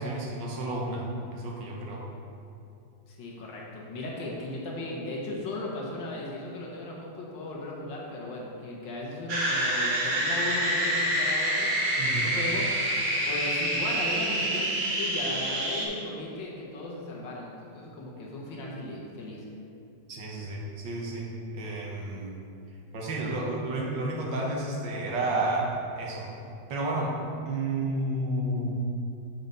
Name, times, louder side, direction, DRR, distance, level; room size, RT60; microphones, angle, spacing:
voice 1, 0.0-2.0 12.0-12.3 20.1-22.4 22.9-26.3 26.7-27.2 27.4-28.8, right 2 dB, 90° right, -2 dB, 1.8 m, -31 dB
voice 2, 3.1-11.7 12.1-12.9 13.2-19.5, left 2 dB, 85° left, -3 dB, 1.9 m, -36 dB
sound 1, 9.3-15.9, right 1 dB, 45° right, 1.3 m, -27 dB
6.7 x 4.4 x 5.3 m, 2.7 s
omnidirectional pair, 2.0 m